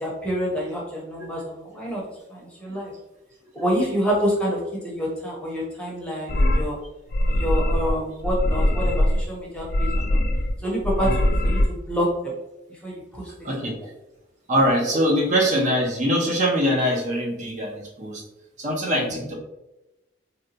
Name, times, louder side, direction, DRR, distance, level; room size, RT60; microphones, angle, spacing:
voice 1, 0.0-2.0 2.3-2.9 3.5-6.8 7.2-10.2 10.6-12.3 12.8-13.5 19.0-19.1, equal, 5° left, -4 dB, 0.7 m, -27 dB
sound 1, 6.3-6.7 7.1-8.0 8.2-9.2 9.6-10.5 10.8-11.6, left 1 dB, 50° left, 0.3 m, -21 dB
voice 2, 13.4-13.8 14.5-18.2 18.6-19.3, equal, 40° right, -1 dB, 0.6 m, -22 dB
3.9 x 2.2 x 2.7 m, 0.97 s
head